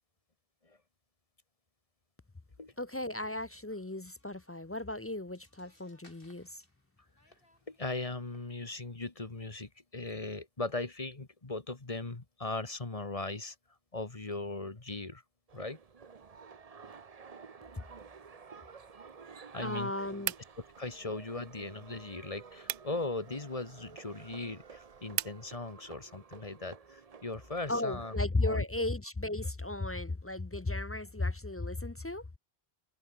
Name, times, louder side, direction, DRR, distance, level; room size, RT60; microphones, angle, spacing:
voice 1, 2.8-6.6 17.8-17.9 19.6-20.3 27.7-32.3, left 2 dB, 20° left, 0.4 m, -35 dB
sound 1, 3.8-3.9 4.0-4.7 5.1-9.0, left 1 dB, 60° left, 7.2 m, -67 dB
voice 2, 7.7-13.6 13.9-15.2 15.5-15.8 19.5-19.9 20.8-28.2 28.4-28.7, left 2 dB, 35° left, 1.7 m, -38 dB
sound 2, 15.5-28.3, right 5 dB, 40° right, 0.9 m, -52 dB
sound 3, 20.2-25.4, right 11 dB, 65° right, 0.7 m, -43 dB
open air
omnidirectional pair, 1.0 m